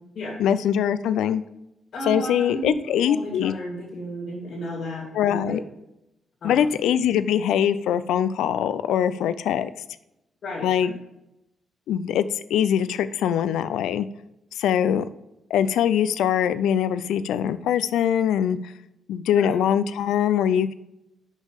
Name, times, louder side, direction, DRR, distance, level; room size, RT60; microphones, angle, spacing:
voice 1, 0.4-1.4 2.1-3.5 5.1-5.6 6.4-9.7 10.6-10.9 11.9-12.3 12.5-14.1 14.5-15.1 15.5-18.6 19.1-20.7, left 9 dB, 85° left, 14 dB, 0.4 m, -22 dB
voice 2, 1.9-2.8 3.0-5.6 6.4-6.7 10.4-10.9 19.4-19.6, equal, 65° left, -5 dB, 2.7 m, -33 dB
6.2 x 5.5 x 6.6 m, 0.87 s
cardioid pair, 65°, 0 cm